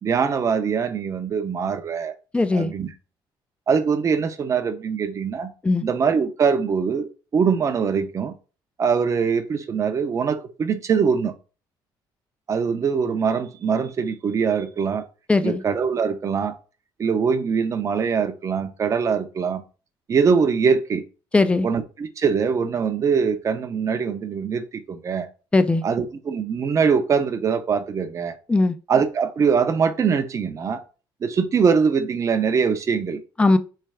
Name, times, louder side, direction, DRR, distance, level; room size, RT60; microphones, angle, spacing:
voice 1, 0.0-2.1 2.5-2.9 3.7-5.5 5.8-8.3 8.8-11.3 12.5-15.0 15.4-16.6 17.0-19.6 20.1-21.0 21.6-25.3 25.8-28.3 28.9-30.8 31.2-33.2, right 6 dB, 35° right, 0.6 m, -22 dB
voice 2, 2.3-2.7 5.6-5.8 15.3-15.6 21.3-21.7 25.5-25.8 28.5-28.8 33.4-33.6, left 3 dB, 15° left, 0.4 m, -18 dB
3.3 x 3.3 x 4.7 m
cardioid pair, 115°, 9 cm